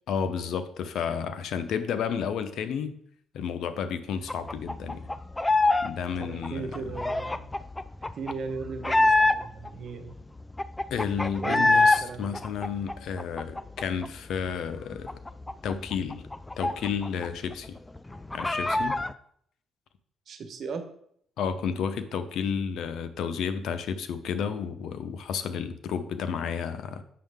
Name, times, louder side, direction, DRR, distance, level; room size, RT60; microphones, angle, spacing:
voice 1, 0.1-3.0 3.3-5.1 5.8-6.9 10.9-15.2 15.6-16.3 16.6-17.8 18.3-19.0 21.4-27.0, left 7 dB, 75° left, 11 dB, 0.7 m, -31 dB
sound 1, 4.3-5.9 6.2-9.7 10.1-10.2 10.4-12.0 12.3-14.1 14.4-14.5 14.8-17.3 17.5-17.6 18.0-19.1, left 2 dB, 15° left, 0.4 m, -25 dB
voice 2, 6.2-7.5 8.2-10.3 11.4-12.3 20.3-20.8, right 5 dB, 60° right, 7 dB, 1.2 m, -37 dB
7.6 x 6.4 x 3.5 m, 0.67 s
cardioid pair, 90°, 0 cm